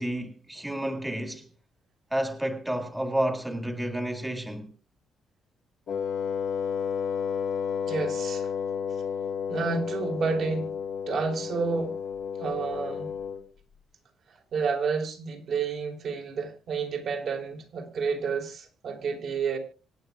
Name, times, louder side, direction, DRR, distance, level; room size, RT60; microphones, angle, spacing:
voice 1, 0.0-1.5 2.1-4.7, right 1 dB, 10° right, 1.9 m, -30 dB
Wind instrument woodwind instrument, 5.9-13.5, left 7 dB, 65° left, 1.8 m, -32 dB
voice 2, 7.9-8.5 9.5-10.7 11.1-12.0 12.4-13.1 14.5-19.6, right 5 dB, 65° right, 4.8 m, -30 dB
25.5 x 9.4 x 2.4 m
cardioid pair, 90°, 0 cm